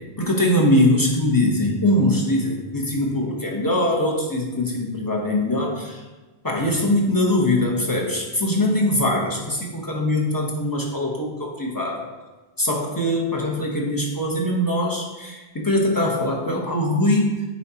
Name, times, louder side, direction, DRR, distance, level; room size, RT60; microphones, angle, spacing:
voice 1, 0.2-6.0 6.4-12.0 12.6-17.3, left 1 dB, 20° left, -2 dB, 1.0 m, -22 dB
8.4 x 4.9 x 2.9 m, 1.2 s
omnidirectional pair, 1.1 m